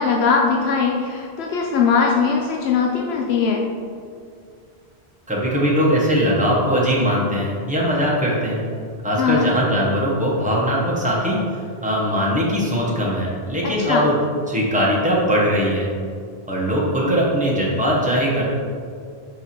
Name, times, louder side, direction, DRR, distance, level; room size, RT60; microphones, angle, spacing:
voice 1, 0.0-3.6 9.2-9.4 13.6-14.0, left 5 dB, 85° left, 0 dB, 0.9 m, -20 dB
voice 2, 5.3-8.6 9.0-11.4 11.8-14.1 14.5-15.9 16.5-18.4, equal, 10° right, -5 dB, 1.2 m, -20 dB
5.4 x 4.6 x 4.4 m, 2.2 s
omnidirectional pair, 1.0 m